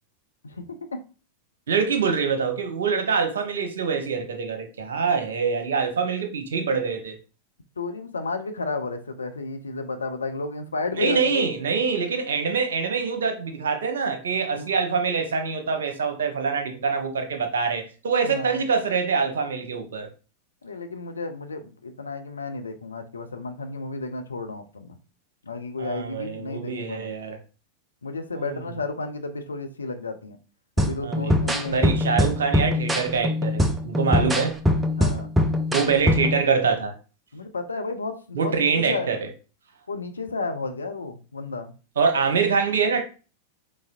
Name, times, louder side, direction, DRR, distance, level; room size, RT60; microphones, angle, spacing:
voice 1, 0.4-1.0 7.8-11.5 14.5-14.7 18.2-18.6 20.6-25.0 25.4-27.1 28.0-30.4 30.8-32.0 34.1-34.4 35.0-35.3 35.8-36.3 37.3-39.1 39.9-41.7, left 3 dB, 75° left, 0.6 m, -32 dB
voice 2, 1.7-7.2 10.9-20.1 25.8-27.4 28.3-28.6 31.0-31.3 31.7-34.6 35.7-37.0 38.3-39.3 42.0-43.0, right 5 dB, 65° right, 0.9 m, -25 dB
sound 1, 30.8-36.4, left 1 dB, 10° right, 0.5 m, -23 dB
5.3 x 3.4 x 2.6 m
figure-of-eight pair, 90°, 0 cm